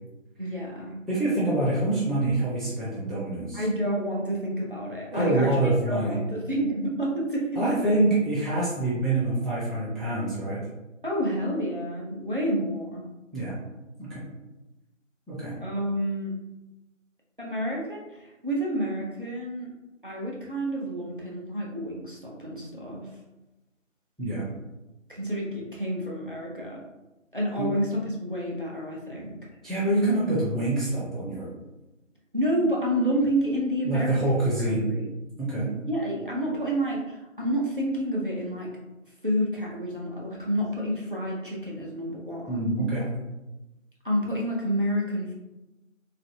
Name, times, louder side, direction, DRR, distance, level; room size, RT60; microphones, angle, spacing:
voice 1, 0.4-1.0 3.5-5.5 5.8-7.5 11.0-13.0 15.6-16.3 17.4-19.7 20.0-23.1 25.1-26.8 27.3-29.4 32.3-34.2 34.7-35.1 35.9-38.7 39.2-42.6 44.0-45.3, equal, 40° right, -3 dB, 0.6 m, -29 dB
voice 2, 1.1-3.6 5.1-6.2 7.6-10.6 13.3-13.5 14.0-14.2 15.3-15.5 24.2-24.4 27.6-27.7 29.6-31.5 33.8-34.9 35.4-35.7 42.5-43.1, right 2 dB, ahead, -9 dB, 0.5 m, -26 dB
3.3 x 2.5 x 2.6 m, 1.0 s
figure-of-eight pair, 180°, 39 cm